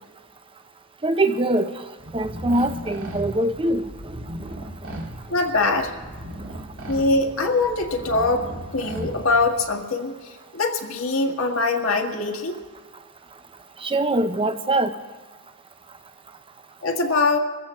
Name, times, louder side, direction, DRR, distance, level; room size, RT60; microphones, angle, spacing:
voice 1, 1.0-1.7 2.1-4.6 6.5-6.6 8.0-8.1 13.8-15.0, right 1 dB, 25° right, 9 dB, 0.7 m, -23 dB
sound 1, 2.0-9.7, right 1 dB, 75° right, 2.3 m, -37 dB
voice 2, 5.3-5.9 6.9-8.4 8.7-10.1 10.5-12.6 16.8-17.4, left 3 dB, 75° left, 3 dB, 1.7 m, -22 dB
25.5 x 14.5 x 3.1 m, 1.3 s
head